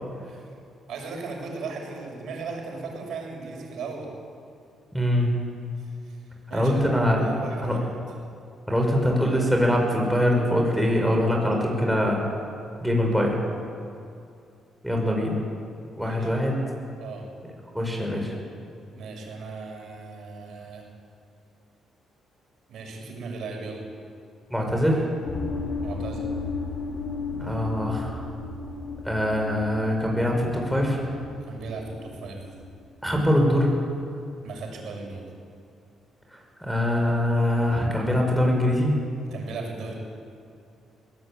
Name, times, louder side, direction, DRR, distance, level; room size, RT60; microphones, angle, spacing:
voice 1, 0.9-4.1 5.8-6.2 6.5-6.8 7.1-7.9 14.9-15.0 16.0-16.3 17.0-17.2 18.9-20.9 22.7-23.8 25.8-26.3 31.5-32.4 34.4-35.2 39.3-40.0, right 4 dB, 75° right, 1 dB, 6.3 m, -37 dB
voice 2, 4.9-5.4 6.5-7.2 7.6-7.8 8.7-12.3 12.8-13.4 14.8-15.4 16.0-16.6 17.7-18.3 24.5-25.0 27.4-28.2 29.0-31.0 33.0-33.7 36.3-38.9, equal, ahead, 0 dB, 5.8 m, -23 dB
sound 1, 25.2-32.8, left 3 dB, 60° left, 4.5 m, -34 dB
21.5 x 16.5 x 9.0 m, 2.5 s
cardioid pair, 95°, 0 cm